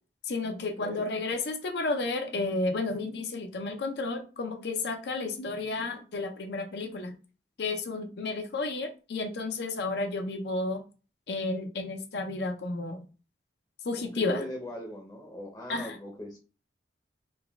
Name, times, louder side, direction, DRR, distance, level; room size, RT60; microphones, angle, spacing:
voice 1, 0.3-7.2 7.6-10.8 11.3-13.0 13.9-14.4 15.7-16.0, left 3 dB, 65° left, 5 dB, 0.5 m, -32 dB
voice 2, 0.8-1.1 14.0-16.4, left 1 dB, 20° left, 2 dB, 0.6 m, -40 dB
4.0 x 2.2 x 3.4 m, 0.34 s
head